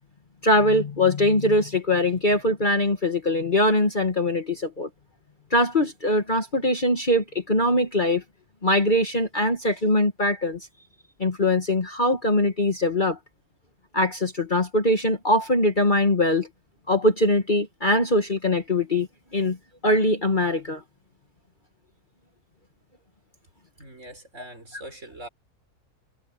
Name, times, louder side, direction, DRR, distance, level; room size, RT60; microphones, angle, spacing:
voice 1, 0.4-4.9 5.5-8.2 8.6-10.6 11.2-13.2 13.9-16.5 16.9-19.1 19.3-19.6 19.8-20.8, left 1 dB, 30° left, 1.8 m, -22 dB
voice 2, 23.8-25.3, right 1 dB, 50° right, 6.5 m, -42 dB
omnidirectional pair, 1.6 m